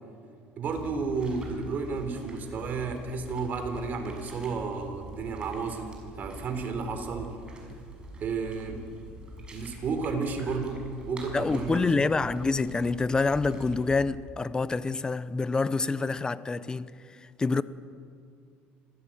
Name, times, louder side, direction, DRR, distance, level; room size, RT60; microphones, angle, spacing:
sound 1, 0.6-14.1, right 1 dB, 20° right, 6.5 m, -45 dB
voice 1, 0.6-7.4 8.2-8.9 9.5-12.0, right 4 dB, 45° right, 3.9 m, -32 dB
sound 2, 5.6-11.2, right 1 dB, 40° left, 7.4 m, -54 dB
voice 2, 11.3-16.9 17.4-17.6, left 4 dB, 20° left, 0.8 m, -27 dB
26.5 x 16.5 x 9.0 m
cardioid pair, 120°, 4 cm